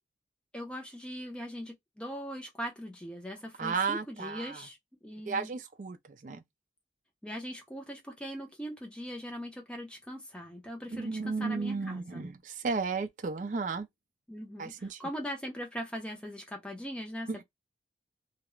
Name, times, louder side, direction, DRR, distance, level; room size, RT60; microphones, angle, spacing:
voice 1, 0.5-5.5 7.2-12.3 14.3-17.4, equal, 5° left, 0.6 m, -40 dB
voice 2, 3.6-4.7 5.3-6.4 10.9-13.9 14.6-15.0 17.3-17.4, right 4 dB, 45° right, 0.4 m, -34 dB
2.3 x 2.0 x 3.0 m
head